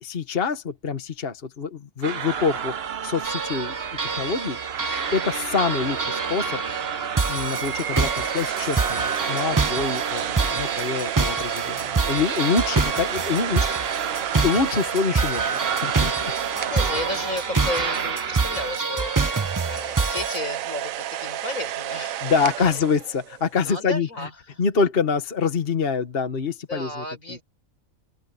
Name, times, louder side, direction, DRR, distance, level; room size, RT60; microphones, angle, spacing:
voice 1, 0.0-3.7 4.0-4.6 5.1-6.6 7.3-13.6 14.4-16.3 22.2-24.1 24.6-27.4, left 5 dB, 45° left, 1.5 m, -26 dB
sound 1, 2.0-18.8, right 8 dB, 50° right, 1.0 m, -31 dB
sound 2, 3.2-20.4, right 4 dB, 30° right, 0.4 m, -27 dB
sound 3, 7.6-17.7 18.7-23.5, right 12 dB, 85° right, 1.1 m, -32 dB
voice 2, 13.2-13.7 14.0-14.3 16.3-22.3 22.6-22.7 23.6-24.6 26.7-27.4, left 1 dB, 85° left, 6.7 m, -34 dB
omnidirectional pair, 1.4 m